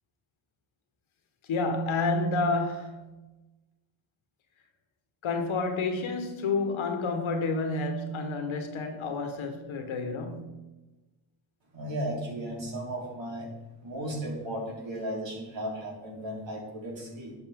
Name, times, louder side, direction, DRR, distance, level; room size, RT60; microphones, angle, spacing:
voice 1, 1.5-3.1 5.2-10.6, left 3 dB, 75° left, 1.5 m, -29 dB
voice 2, 11.7-13.5 13.8-17.3, right 1 dB, 65° right, 3.5 m, -35 dB
11.0 x 6.5 x 3.7 m
cardioid pair, 60°, 48 cm